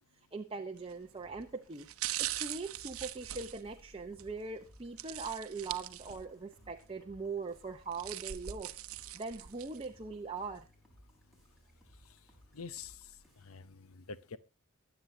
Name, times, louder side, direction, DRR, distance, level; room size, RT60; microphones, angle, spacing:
voice 1, 0.3-1.9 2.2-8.7 9.1-10.7, right 4 dB, 25° right, 0.8 m, -41 dB
sound 1, 0.8-1.1 1.7-4.3 5.0-6.4 6.8-6.9 7.7-9.9 10.3-10.4, right 13 dB, 80° right, 0.8 m, -41 dB
sound 2, 1.1-13.6, equal, ahead, 4.4 m, -62 dB
voice 2, 12.5-14.4, left 5 dB, 85° left, 0.8 m, -47 dB
23.0 x 8.1 x 2.7 m
head